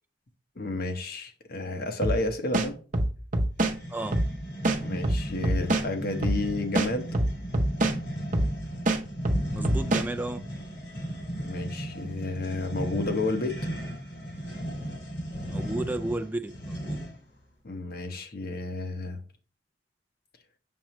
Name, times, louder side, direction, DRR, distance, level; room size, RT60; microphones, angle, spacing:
voice 1, 0.6-2.8 4.7-7.1 11.4-13.6 17.6-19.2, left 2 dB, 55° left, 1.0 m, -31 dB
sound 1, 2.0-2.2 2.5-3.7 4.1-4.3 4.6-5.9 6.2-6.4 6.7-8.0 8.3-8.5 8.9-10.1, right 1 dB, 45° right, 0.8 m, -24 dB
sound 2, 3.6-17.3, equal, 75° left, 2.5 m, -36 dB
voice 2, 9.5-10.4 15.5-17.0, right 2 dB, 10° right, 0.4 m, -33 dB
7.3 x 6.1 x 3.1 m
head